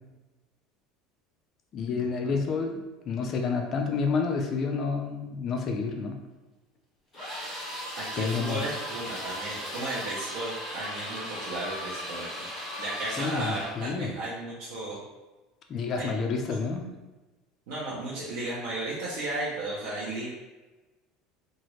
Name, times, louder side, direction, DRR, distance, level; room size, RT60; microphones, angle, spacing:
voice 1, 1.7-6.2 8.2-8.6 13.1-14.1 15.7-16.9, left 4 dB, 30° left, 3 dB, 0.4 m, -29 dB
sound 1, 7.1-13.8, equal, 10° left, 1.3 m, -37 dB
voice 2, 8.0-12.5 12.8-15.0 15.9-16.3 17.7-20.3, right 2 dB, 90° right, -7 dB, 0.7 m, -34 dB
2.9 x 2.4 x 3.0 m, 1.1 s
cardioid pair, 170°, 0 cm